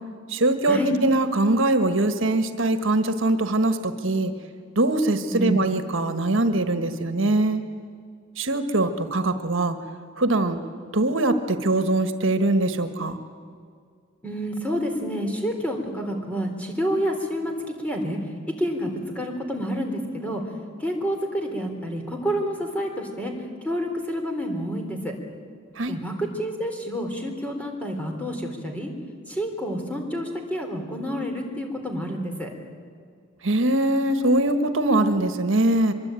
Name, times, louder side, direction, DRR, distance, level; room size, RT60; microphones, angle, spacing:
voice 1, 0.3-4.3 4.7-7.6 8.4-9.8 10.2-10.6 10.9-13.2 25.8-26.0 33.4-35.9, right 2 dB, 70° right, 9 dB, 1.5 m, -22 dB
voice 2, 14.2-17.5 17.8-18.2 18.6-18.9 19.2-20.4 20.8-23.3 23.6-25.1 25.9-28.9 29.3-32.5, equal, 5° left, 2 dB, 3.8 m, -28 dB
24.0 x 23.5 x 9.1 m, 2.2 s
head